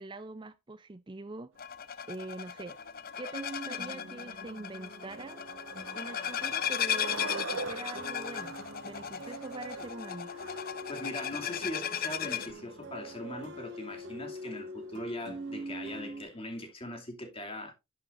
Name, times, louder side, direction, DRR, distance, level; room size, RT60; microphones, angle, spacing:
voice 1, 0.0-1.5 2.1-2.8 3.2-5.5 5.9-8.6 8.8-10.3, right 2 dB, 20° right, 0.5 m, -43 dB
sound 1, 1.6-12.5, left 9 dB, 45° left, 0.6 m, -36 dB
Skateboard, 1.6-16.7, right 3 dB, 75° right, 1.9 m, -46 dB
sound 2, 3.3-7.3 7.9-16.2, equal, 55° right, 2.5 m, -45 dB
voice 2, 10.9-17.7, left 1 dB, 25° left, 2.5 m, -40 dB
11.0 x 8.6 x 2.5 m
head